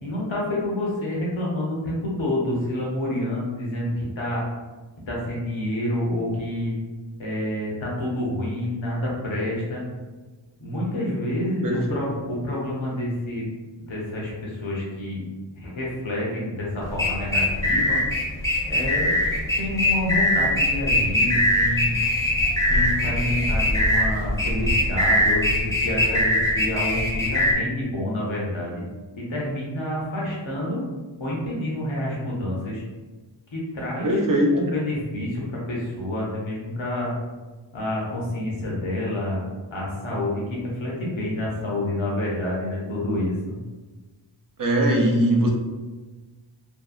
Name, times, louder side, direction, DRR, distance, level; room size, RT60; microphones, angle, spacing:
voice 1, 0.0-4.4 5.1-6.7 7.2-9.8 10.6-13.4 13.8-15.2 15.5-18.0 18.7-19.2 19.5-22.0 22.7-28.8 29.2-30.8 31.2-32.8 33.5-34.2 34.5-37.1 37.7-39.4 39.7-43.6, left 1 dB, 80° left, -4 dB, 0.7 m, -28 dB
voice 2, 11.6-12.0 34.0-34.5 44.6-45.5, right 1 dB, 45° right, -1 dB, 0.6 m, -20 dB
sound 1, 16.8-27.5, left 1 dB, 5° left, 0.6 m, -22 dB
2.6 x 2.1 x 2.3 m, 1.3 s
wide cardioid pair, 40°, 47 cm